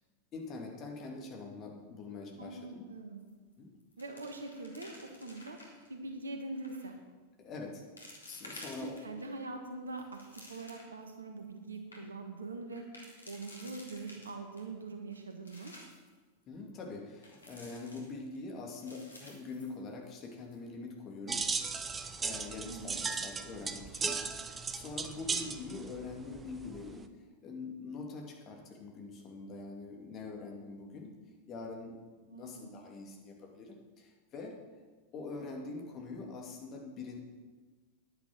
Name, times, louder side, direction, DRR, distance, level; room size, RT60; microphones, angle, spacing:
voice 1, 0.3-3.1 3.6-3.7 7.4-7.8 8.3-9.2 16.5-21.5 21.8-27.1 27.4-31.1 31.5-32.0 32.2-34.5 35.1-37.2, left 3 dB, 30° left, 0 dB, 2.5 m, -44 dB
voice 2, 2.4-3.2 4.0-4.9 5.2-5.6 5.9-7.0 8.8-12.8 13.3-15.7 22.6-23.0 25.4-25.6 32.3-32.8, right 3 dB, 75° right, 5 dB, 1.6 m, -43 dB
sound 1, 3.2-3.5 3.8-5.9 6.5-6.9 7.5-7.6 8.0-9.3 9.7-11.0 11.4-11.5 11.7-12.0 12.7-14.6 15.1-16.1 17.2-18.4 18.7-20.2 20.5-20.6 21.1-21.4, left 1 dB, 75° left, 2.4 m, -53 dB
sound 2, 21.3-27.0, right 5 dB, 20° right, 0.8 m, -37 dB
10.5 x 9.6 x 6.1 m, 1.4 s
figure-of-eight pair, 90°, 0 cm